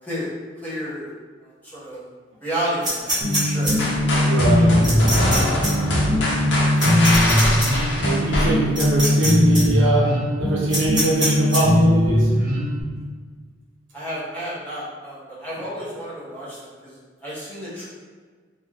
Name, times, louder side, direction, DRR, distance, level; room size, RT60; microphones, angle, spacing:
voice 1, 0.5-1.1 1.4-2.0 2.4-3.8 13.9-17.8, equal, 10° left, -9 dB, 0.9 m, -31 dB
sound 1, 2.8-3.7 4.8-5.4 5.6-5.7 6.8-7.7 8.8-9.3 9.5-9.6 10.7-11.6, right 1 dB, 25° right, 1.1 m, -24 dB
sound 2, 3.2-12.8, left 1 dB, 45° right, 0.9 m, -20 dB
sound 3, 3.8-9.0, left 1 dB, 65° left, 0.7 m, -23 dB
voice 2, 4.2-4.7 8.0-12.3, right 2 dB, 80° right, -5 dB, 0.8 m, -23 dB
2.7 x 2.3 x 3.3 m, 1.5 s
head